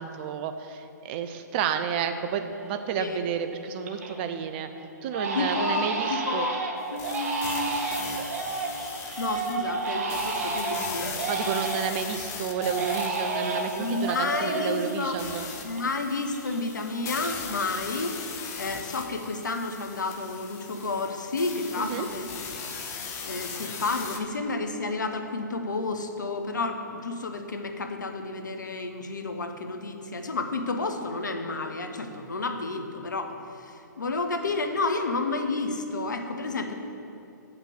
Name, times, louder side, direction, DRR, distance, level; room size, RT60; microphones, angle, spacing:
voice 1, 0.0-4.7 5.0-6.5 11.3-15.5 21.8-22.1, right 7 dB, 30° right, 8 dB, 0.5 m, -31 dB
Crying sobbing, 2.5-3.0 3.4-4.2 4.5-4.7 5.1-12.0 12.5-15.8 16.1-17.6 17.9-18.4, right 3 dB, 50° right, 1.2 m, -32 dB
voice 2, 3.0-3.3 5.3-6.6 6.9-7.8 9.2-11.1 13.8-15.1 15.6-18.1 18.6-22.3 23.2-36.7, left 3 dB, 75° left, 5 dB, 1.0 m, -31 dB
sound 1, 7.0-24.2, left 5 dB, 25° left, 0.9 m, -39 dB
9.0 x 5.9 x 6.4 m, 2.7 s
figure-of-eight pair, 125°, 10 cm